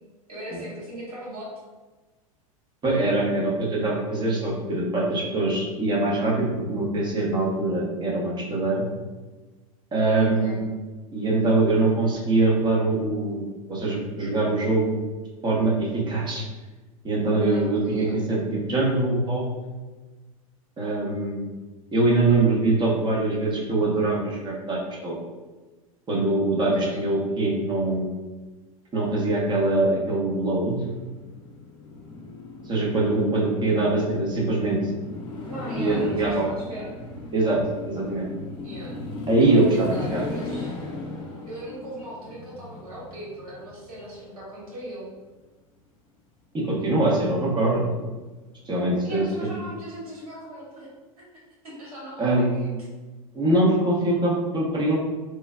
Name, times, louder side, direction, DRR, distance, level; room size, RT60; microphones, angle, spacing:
voice 1, 0.3-1.5 10.0-10.6 17.4-18.1 26.6-27.0 35.5-37.0 38.6-39.0 39.4-40.8 41.5-45.1 49.0-50.9 51.2-52.8, right 1 dB, 90° right, -6 dB, 1.2 m, -39 dB
voice 2, 2.8-8.9 9.9-10.7 11.1-15.0 15.4-16.4 17.0-19.5 20.8-21.5 21.9-25.1 26.1-28.0 28.9-30.8 32.6-34.8 35.8-36.4 37.3-37.6 37.8-38.3 39.3-40.2 46.5-47.8 48.7-49.5 52.2-52.5 53.3-55.0, right 2 dB, 25° right, -3 dB, 0.9 m, -23 dB
sound 1, 30.8-44.8 49.2-49.6, left 3 dB, 25° left, 0.7 m, -37 dB
3.2 x 2.2 x 2.2 m, 1.2 s
hypercardioid pair, 95°, 18 cm